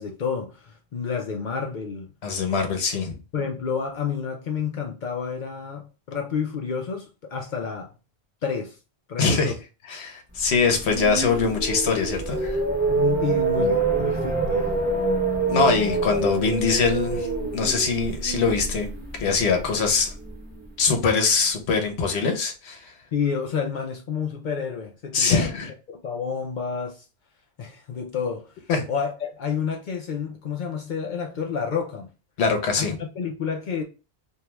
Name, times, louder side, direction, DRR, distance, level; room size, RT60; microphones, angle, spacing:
voice 1, 0.0-2.1 3.3-7.9 8.4-8.8 9.1-9.6 12.9-14.7 23.1-25.5 25.9-27.0 27.6-28.5 28.9-32.1 32.7-33.8, left 6 dB, 60° left, 0.6 m, -29 dB
voice 2, 2.2-3.2 9.2-9.5 9.9-12.6 15.5-17.3 17.5-18.9 19.2-20.1 20.8-22.9 25.1-25.7 28.7-28.8 32.4-32.9, left 5 dB, 75° left, 1.0 m, -23 dB
sound 1, 10.5-20.6, right 3 dB, 10° right, 1.0 m, -26 dB
2.6 x 2.3 x 3.0 m
omnidirectional pair, 1.1 m